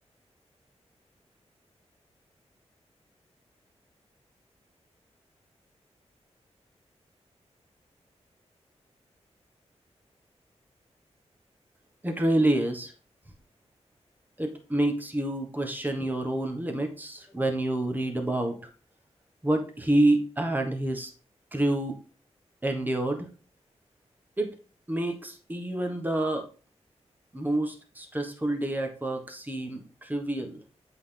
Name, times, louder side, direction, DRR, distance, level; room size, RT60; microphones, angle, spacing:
voice 1, 12.0-12.9 14.4-18.5 19.4-21.1 21.5-21.9 22.6-23.3 24.4-24.6 24.9-26.4 27.3-30.6, right 1 dB, 15° right, 4 dB, 1.3 m, -28 dB
8.0 x 4.0 x 3.3 m, 0.37 s
wide cardioid pair, 95°, 12 cm